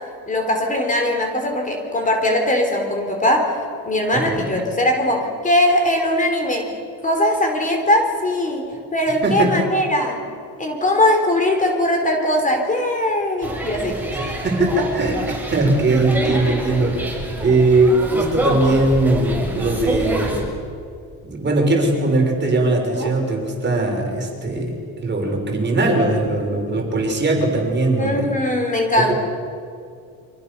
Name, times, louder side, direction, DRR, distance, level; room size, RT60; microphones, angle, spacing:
voice 1, 0.3-3.6 3.8-6.8 7.0-8.6 8.9-10.2 10.6-14.0 23.0-23.1 28.0-29.2, left 1 dB, 20° left, 3 dB, 4.3 m, -20 dB
sound 1, 13.4-20.4, right 1 dB, 5° right, 7.1 m, -26 dB
voice 2, 14.1-17.1 17.4-20.4 21.2-28.4 29.0-29.2, right 2 dB, 30° right, 2 dB, 5.9 m, -20 dB
29.5 x 25.5 x 7.0 m, 2.4 s
cardioid pair, 135°, 37 cm